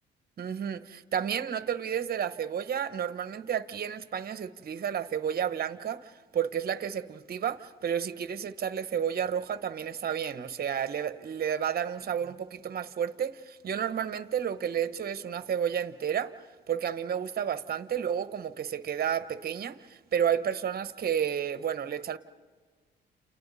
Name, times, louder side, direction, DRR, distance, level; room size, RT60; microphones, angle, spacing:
voice 1, 0.4-16.3 16.7-22.2, right 8 dB, 50° right, 1.1 m, -31 dB
29.5 x 29.5 x 4.2 m
cardioid pair, 90°, 20 cm